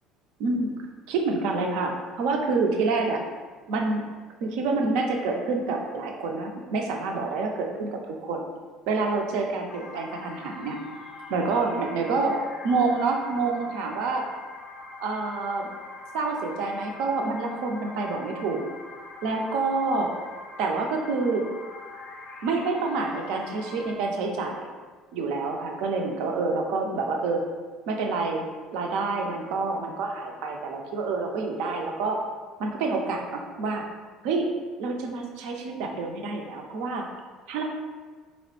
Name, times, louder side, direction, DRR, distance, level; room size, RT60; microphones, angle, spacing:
voice 1, 1.1-3.2 3.7-4.0 4.4-8.5 8.9-10.8 11.3-14.2 15.0-15.7 16.1-18.6 19.2-20.1 20.6-21.5 22.4-24.6 25.1-27.4 27.9-28.5 28.7-32.2 32.6-33.8 34.2-34.5 34.8-37.1 37.5-37.6, right 3 dB, 60° right, 2 dB, 0.4 m, -27 dB
sound 1, 9.7-24.0, left 3 dB, 50° left, 0.4 m, -43 dB
3.8 x 2.0 x 3.0 m, 1.4 s
figure-of-eight pair, 60°, 0 cm